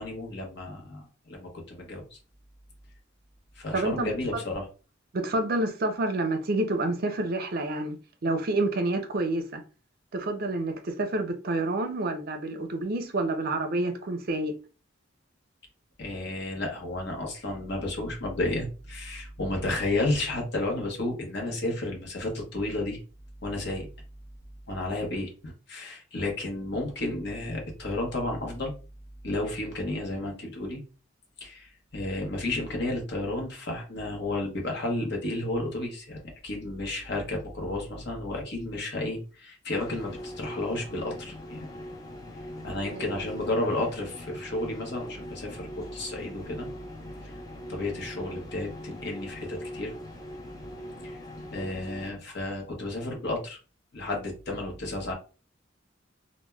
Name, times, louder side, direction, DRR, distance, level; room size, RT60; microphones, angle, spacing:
voice 1, 0.0-2.2 3.6-4.7 16.0-23.0 23.4-23.9 24.7-28.7 29.2-30.8 31.4-41.7 42.6-46.7 47.2-47.3 47.7-49.9 51.0-51.2 51.5-53.6 53.9-55.1, left 2 dB, 60° left, 0.8 m, -32 dB
voice 2, 3.7-4.4 5.1-8.0 8.2-9.6 10.1-14.5 42.9-43.1, right 2 dB, 50° right, 0.5 m, -28 dB
sound 1, 39.7-52.1, equal, 20° left, 0.5 m, -41 dB
3.2 x 2.1 x 2.2 m
head